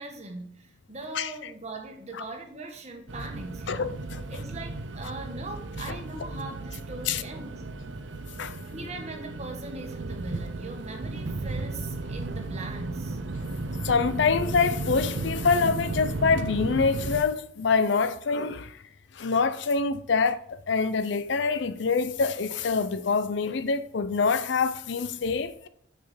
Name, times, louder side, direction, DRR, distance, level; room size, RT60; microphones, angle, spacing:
voice 1, 0.0-4.0 4.3-7.6 8.7-13.2, right 2 dB, 35° right, 1.5 m, -40 dB
sound 1, 3.1-17.2, right 2 dB, 65° right, 0.7 m, -34 dB
voice 2, 3.7-4.2 7.1-7.2 8.4-8.5 13.8-18.8 19.1-25.7, left 5 dB, 60° left, 0.5 m, -25 dB
6.3 x 5.9 x 6.0 m
head